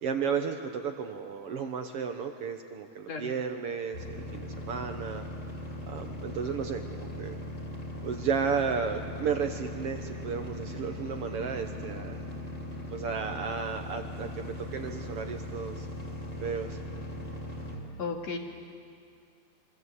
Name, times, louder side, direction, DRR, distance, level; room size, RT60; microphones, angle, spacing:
voice 1, 0.0-5.2 5.9-7.3 8.0-12.2 12.9-15.9 16.4-16.8, right 6 dB, 60° right, 5 dB, 1.8 m, -33 dB
sound 1, 3.9-17.8, left 1 dB, 30° left, 4.2 m, -39 dB
voice 2, 18.0-18.4, left 4 dB, 65° left, 2 dB, 3.2 m, -34 dB
26.5 x 23.5 x 8.2 m, 2.3 s
omnidirectional pair, 3.4 m